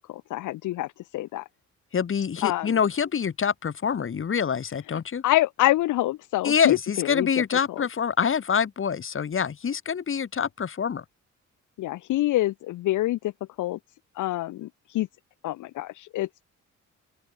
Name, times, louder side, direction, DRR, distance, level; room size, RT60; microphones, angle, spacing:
voice 1, 0.0-1.4 2.4-2.8 4.9-5.0 5.2-7.4 7.7-7.8 11.8-13.3 13.6-13.8 14.2-15.1 15.4-16.4, left 16 dB, 80° left, 1.1 m, -26 dB
voice 2, 1.9-5.2 6.4-11.0, left 7 dB, 45° left, 2.5 m, -26 dB
open air
cardioid pair, 90°, 30 cm